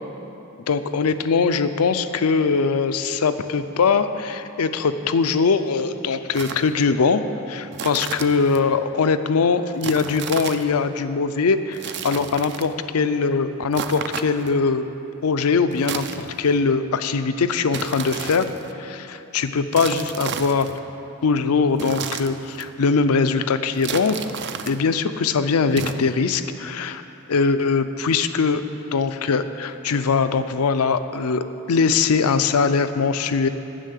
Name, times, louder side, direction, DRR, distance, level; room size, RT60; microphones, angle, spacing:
voice 1, 0.7-7.2 7.5-14.9 15.2-18.5 18.8-20.8 21.2-24.2 24.7-27.0 27.3-28.6 28.9-33.5, left 5 dB, 80° left, 11 dB, 0.5 m, -21 dB
sound 1, 6.3-6.7 7.7-8.6 9.8-10.7 11.7-12.7 13.7-14.6 15.7-16.6 17.7-18.7 19.7-20.8 21.7-22.7 23.7-24.8 25.7-25.9, right 7 dB, 50° right, 0.5 m, -32 dB
10.0 x 6.8 x 8.2 m, 2.9 s
head